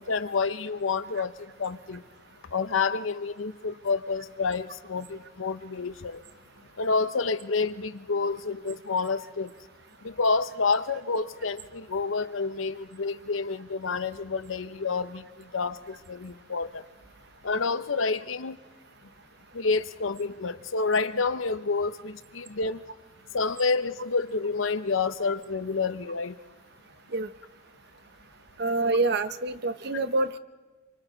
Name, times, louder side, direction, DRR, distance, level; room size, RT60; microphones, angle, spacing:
voice 1, 0.0-2.0 2.5-6.2 6.8-9.5 10.0-15.2 15.5-15.8 16.1-16.8 17.4-18.6 19.5-22.8 23.3-26.3, left 4 dB, 85° left, 12 dB, 0.8 m, -28 dB
voice 2, 28.6-30.4, right 3 dB, 55° right, 11 dB, 0.9 m, -26 dB
27.5 x 24.0 x 4.0 m, 1.3 s
head